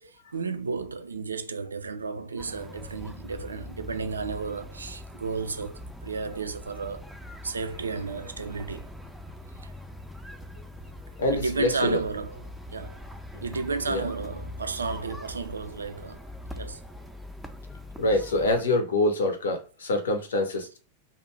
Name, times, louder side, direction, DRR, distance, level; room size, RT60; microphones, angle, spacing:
voice 1, 0.0-7.1 7.4-8.9 9.6-9.7 11.3-12.4 12.7-13.0 13.4-16.3 16.5-16.8, right 4 dB, 75° right, 0.3 m, -33 dB
sound 1, 2.4-18.6, left 1 dB, ahead, 0.4 m, -42 dB
voice 2, 11.2-12.0 13.3-13.4 13.9-14.0 18.0-20.8, left 2 dB, 65° left, 0.5 m, -25 dB
2.5 x 2.1 x 3.1 m
figure-of-eight pair, 90°, 0 cm